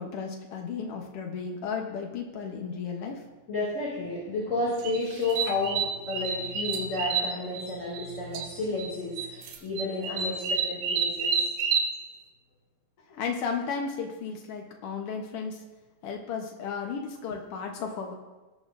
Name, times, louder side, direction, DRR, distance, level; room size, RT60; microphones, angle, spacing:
voice 1, 0.0-3.2 13.1-15.6 16.0-18.1, left 5 dB, 80° left, 2 dB, 1.3 m, -34 dB
voice 2, 3.5-11.5, left 3 dB, 25° left, -6 dB, 2.1 m, -31 dB
sound 1, 4.8-8.1 8.3-8.9 9.2-11.9, right 6 dB, 90° right, 2.8 m, -29 dB
19.0 x 8.6 x 2.6 m, 1.2 s
omnidirectional pair, 4.0 m